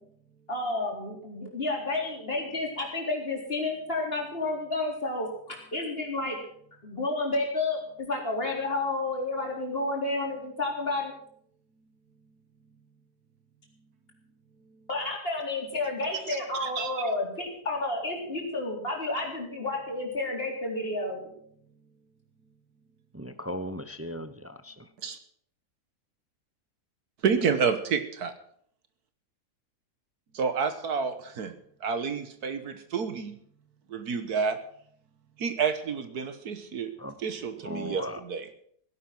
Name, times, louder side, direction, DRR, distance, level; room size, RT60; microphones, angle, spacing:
voice 1, 0.5-6.4 6.8-11.1 14.9-21.3, left 2 dB, 35° left, 0 dB, 4.2 m, -31 dB
voice 2, 16.6-16.9 25.0-25.2 27.2-28.3 30.3-31.5 31.8-33.3 33.9-34.6 35.4-36.9 37.2-38.5, right 6 dB, 65° right, 10 dB, 1.7 m, -29 dB
voice 3, 23.1-24.9 37.0-37.1 37.6-38.2, equal, 20° right, 10 dB, 0.3 m, -37 dB
17.0 x 11.0 x 6.0 m, 0.65 s
omnidirectional pair, 1.8 m